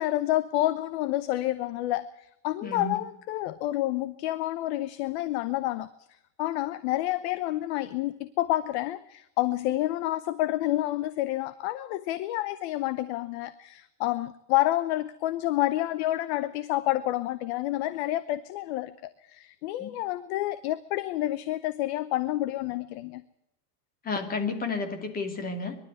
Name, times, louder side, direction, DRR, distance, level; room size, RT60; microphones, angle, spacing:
voice 1, 0.0-5.9 6.4-18.9 19.2-23.2, left 15 dB, 40° left, 15 dB, 0.8 m, -29 dB
voice 2, 2.6-3.0 19.8-19.9 24.0-25.8, left 4 dB, 20° left, 6 dB, 2.8 m, -31 dB
23.0 x 12.5 x 9.4 m, 0.85 s
supercardioid pair, 165°, 49 cm